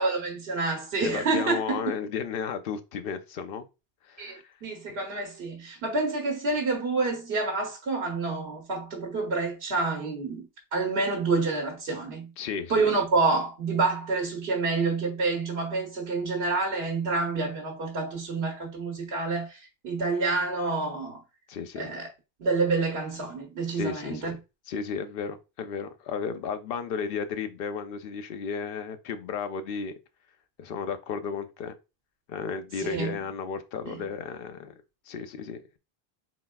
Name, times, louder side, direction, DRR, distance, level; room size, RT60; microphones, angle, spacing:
voice 1, 0.0-1.8 4.2-4.4 4.6-10.5 10.7-12.3 12.7-21.2 21.8-22.1 22.4-24.3 32.8-33.2 33.9-34.0, right 3 dB, 80° right, 1.3 m, -28 dB
voice 2, 1.0-3.7 4.0-4.6 12.4-12.9 21.5-21.9 23.7-24.4 24.7-29.9 30.6-31.7 32.3-35.8, left 6 dB, 70° left, 0.8 m, -34 dB
4.3 x 4.0 x 2.3 m
omnidirectional pair, 1.0 m